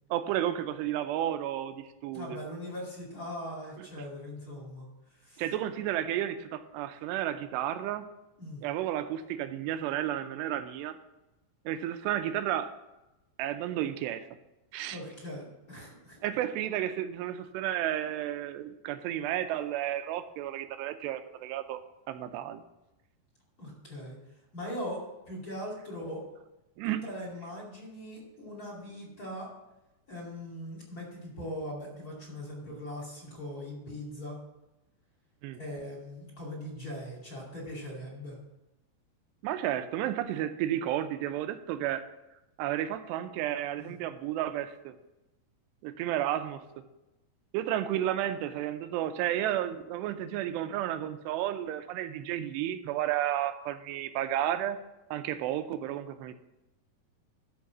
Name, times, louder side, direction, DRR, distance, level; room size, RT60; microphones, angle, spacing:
voice 1, 0.1-2.4 3.8-3.9 5.4-8.1 8.6-11.0 11.7-12.7 13.4-14.3 14.7-15.0 16.2-21.8 22.1-22.6 26.8-27.0 35.4-35.6 39.4-42.1 42.6-44.9 45.8-46.6 47.5-54.8 55.1-56.3, right 12 dB, 85° right, 10 dB, 2.7 m, -32 dB
voice 2, 2.1-5.4 8.4-8.6 14.9-16.2 23.6-24.2 24.5-26.2 26.8-29.5 30.1-34.4 35.5-38.4 43.8-43.9, equal, 25° left, -4 dB, 2.4 m, -40 dB
13.0 x 4.7 x 6.0 m, 0.97 s
omnidirectional pair, 4.9 m